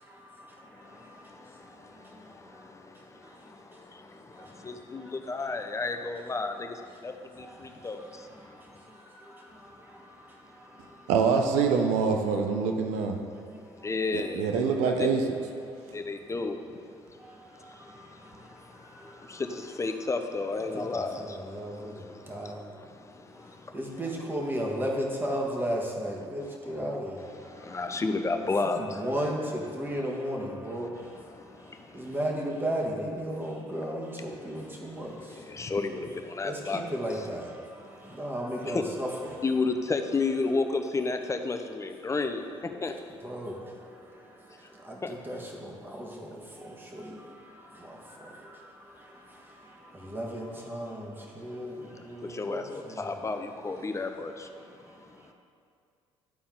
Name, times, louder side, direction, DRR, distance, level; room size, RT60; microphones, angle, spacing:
voice 1, 0.0-5.4 7.1-11.1 13.3-13.9 15.7-15.9 17.2-19.4 20.6-27.8 28.6-35.5 36.4-39.4 43.2-53.2 54.6-55.3, equal, 15° right, -2 dB, 1.6 m, -37 dB
voice 2, 4.7-5.0 5.3-6.5 7.0-7.1 7.8-8.0 13.8-14.5 15.0-15.1 15.9-16.6 19.8-21.2 27.7-28.8 35.6-36.0 36.4-36.8 38.7-38.8 39.4-42.4 42.8-42.9 52.4-52.6 53.0-54.3, left 3 dB, 25° left, 6 dB, 0.7 m, -30 dB
voice 3, 11.1-13.2 14.3-15.2, right 5 dB, 80° right, 4 dB, 0.7 m, -25 dB
11.5 x 4.3 x 3.7 m, 2.3 s
supercardioid pair, 65°, 12 cm